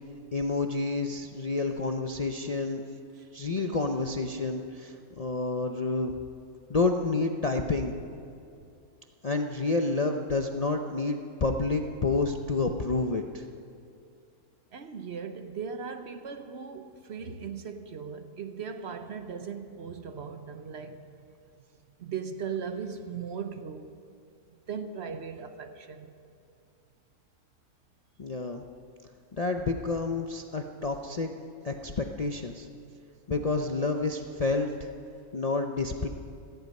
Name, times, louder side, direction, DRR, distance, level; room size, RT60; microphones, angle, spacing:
voice 1, 0.3-2.8 3.3-6.2 6.7-7.9 9.2-13.4 28.2-28.6 29.4-31.3 31.6-32.7 33.3-34.9 35.3-36.1, left 3 dB, 55° left, 0.4 m, -29 dB
voice 2, 14.7-21.2 21.9-24.0 24.5-26.1, right 6 dB, 55° right, 0.9 m, -38 dB
17.0 x 14.5 x 5.4 m
omnidirectional pair, 1.6 m